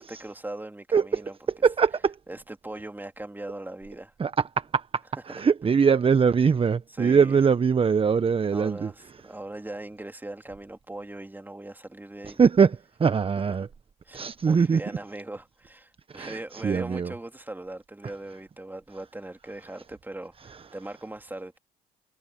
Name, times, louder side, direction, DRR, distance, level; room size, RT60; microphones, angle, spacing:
voice 1, 0.0-1.4 2.3-4.1 7.0-7.4 8.5-12.4 13.6-13.7 14.1-21.6, right 2 dB, 10° right, 3.5 m, -40 dB
voice 2, 0.9-1.2 1.6-2.1 4.2-8.9 12.2-13.7 14.1-15.0 16.1-17.1 18.0-18.1 20.4-20.6, right 6 dB, 30° right, 1.3 m, -23 dB
hypercardioid pair, 55°, 17 cm